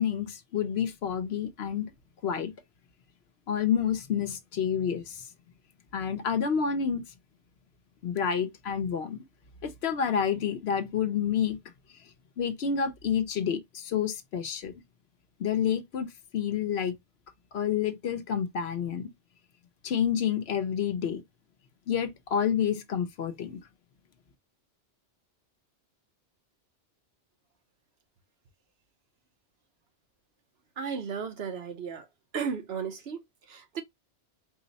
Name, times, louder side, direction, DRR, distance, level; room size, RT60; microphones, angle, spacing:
voice 1, 0.0-1.9 2.2-2.5 3.5-5.3 5.9-7.0 8.0-9.2 9.6-11.6 12.4-14.7 15.4-16.1 16.3-16.9 17.5-19.1 19.8-21.2 21.9-23.6, left 8 dB, 65° left, 0.9 m, -29 dB
voice 2, 30.8-32.1 32.3-33.8, right 6 dB, 65° right, 1.0 m, -35 dB
4.8 x 2.1 x 3.9 m
omnidirectional pair, 1.2 m